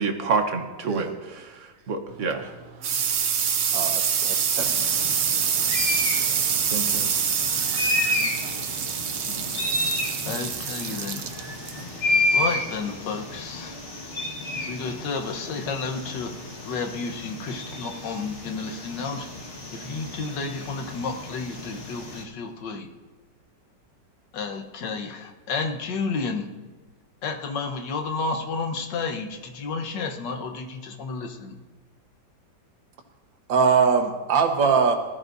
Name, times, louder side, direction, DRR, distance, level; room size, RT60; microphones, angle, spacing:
voice 1, 0.0-2.5 6.7-7.1, right 4 dB, 50° right, 6 dB, 1.1 m, -28 dB
sound 1, 2.1-13.4, right 7 dB, 75° right, 0.6 m, -26 dB
voice 2, 3.7-4.8 33.5-35.0, right 5 dB, 90° right, 5 dB, 1.9 m, -22 dB
sound 2, 4.6-22.2, left 1 dB, 40° left, 1.7 m, -31 dB
voice 3, 9.2-9.6 10.2-11.2 12.3-13.7 14.7-16.3 16.6-19.3 19.7-22.9 24.3-26.5 27.2-31.5, left 4 dB, 70° left, 5 dB, 1.7 m, -31 dB
19.5 x 13.5 x 2.6 m, 1.3 s
omnidirectional pair, 2.0 m